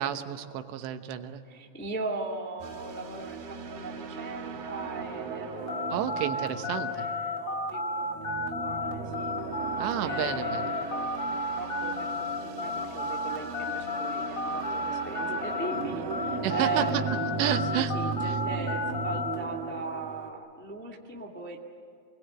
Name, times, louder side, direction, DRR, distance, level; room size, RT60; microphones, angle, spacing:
voice 1, 0.0-1.4 5.9-7.0 9.8-10.7 16.4-17.0 17.4-18.0 18.3-18.4, right 10 dB, 85° right, 8 dB, 3.3 m, -31 dB
voice 2, 1.5-8.1 8.5-9.3 10.0-11.1 11.5-12.1 12.4-17.0 17.3-17.4 17.7-21.6, right 2 dB, 5° left, 0 dB, 0.8 m, -38 dB
sound 1, 2.6-20.3, right 5 dB, 65° right, 3.1 m, -37 dB
sound 2, 5.7-15.8 16.1-19.4, left 2 dB, 40° left, 1.8 m, -32 dB
27.0 x 21.0 x 9.1 m, 2.3 s
omnidirectional pair, 4.8 m